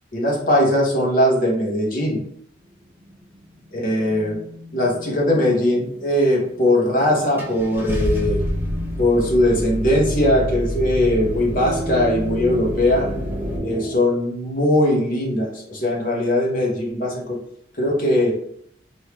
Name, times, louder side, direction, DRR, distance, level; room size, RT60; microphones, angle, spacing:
voice 1, 0.1-2.2 3.7-4.4 4.7-8.4 9.0-13.1 13.6-17.4 17.8-18.4, left 1 dB, 45° left, -2 dB, 1.0 m, -20 dB
sound 1, 2.6-14.0, equal, 45° right, 0.5 m, -34 dB
Car / Engine starting, 6.7-6.8 7.4-13.6, equal, 10° right, 0.7 m, -28 dB
3.0 x 2.7 x 3.3 m, 0.68 s
head